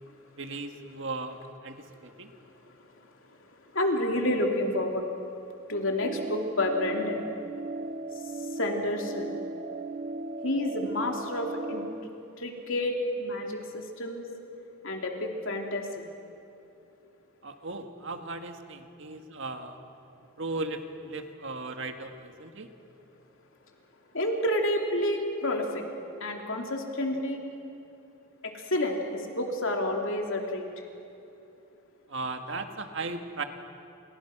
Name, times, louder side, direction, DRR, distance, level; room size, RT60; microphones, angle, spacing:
voice 1, 0.4-1.4 1.6-2.3 17.4-19.8 20.4-22.7 32.1-33.4, right 3 dB, 60° right, 6 dB, 1.9 m, -37 dB
voice 2, 3.7-5.0 5.7-7.2 8.6-9.3 10.4-11.8 12.4-13.6 14.0-14.2 14.8-16.0 24.1-25.8 26.2-27.4 28.4-30.7, left 1 dB, 60° left, 2 dB, 3.2 m, -29 dB
sound 1, 6.0-12.0, right 3 dB, 40° right, 0.6 m, -37 dB
29.0 x 29.0 x 6.2 m, 2.8 s
head